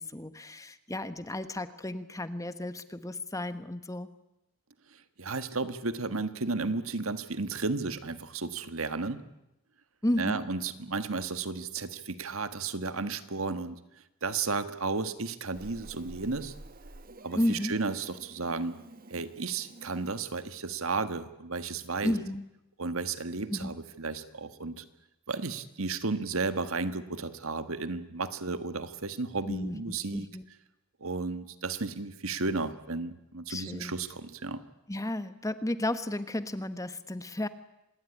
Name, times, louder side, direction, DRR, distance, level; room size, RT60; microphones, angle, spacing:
voice 1, 0.0-4.1 10.0-10.4 17.3-17.7 22.0-22.4 23.5-23.7 29.5-29.8 30.1-30.4 33.5-33.9 34.9-37.5, left 1 dB, 15° left, 12 dB, 1.1 m, -33 dB
voice 2, 4.9-9.2 10.2-13.8 14.2-16.5 17.2-18.8 19.1-22.1 22.8-24.9 25.3-30.3 31.0-34.6, right 3 dB, 70° right, 11 dB, 1.7 m, -33 dB
Meow, 15.5-20.2, right 2 dB, 40° right, 1.3 m, -50 dB
26.0 x 20.5 x 9.9 m, 0.92 s
head